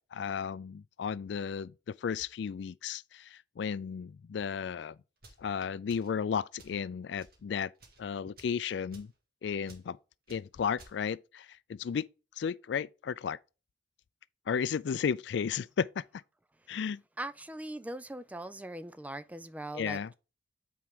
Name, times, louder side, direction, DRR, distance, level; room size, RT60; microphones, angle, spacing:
voice 1, 0.0-5.0 5.4-7.7 8.0-9.1 9.4-10.0 10.3-12.1 12.4-13.4 14.5-16.0 16.7-17.0 19.7-20.1, left 7 dB, 75° left, 0.3 m, -34 dB
sound 1, 5.2-5.4 5.9-6.2 6.6-6.8 7.2-7.4 7.7-8.0 8.4-8.6 8.9-9.1 9.7-9.9 10.3-10.4 10.8-11.0, right 2 dB, 50° right, 2.2 m, -56 dB
voice 2, 17.2-20.1, right 1 dB, 10° right, 0.3 m, -41 dB
8.6 x 4.6 x 3.6 m
head